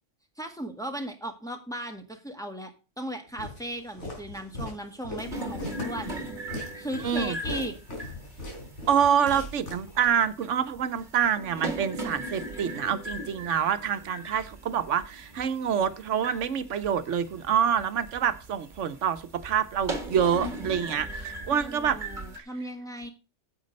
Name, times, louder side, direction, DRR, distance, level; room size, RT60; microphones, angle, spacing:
voice 1, 0.4-6.1 6.7-7.7 21.5-23.1, right 1 dB, 5° left, 1.6 m, -37 dB
Walk footsteps, 3.4-10.3, left 2 dB, 75° left, 4.2 m, -39 dB
sound 1, 5.2-22.4, right 1 dB, 45° right, 1.7 m, -39 dB
voice 2, 7.0-7.4 8.9-22.0, right 8 dB, 90° right, 1.2 m, -26 dB
9.5 x 7.9 x 5.2 m
omnidirectional pair, 1.2 m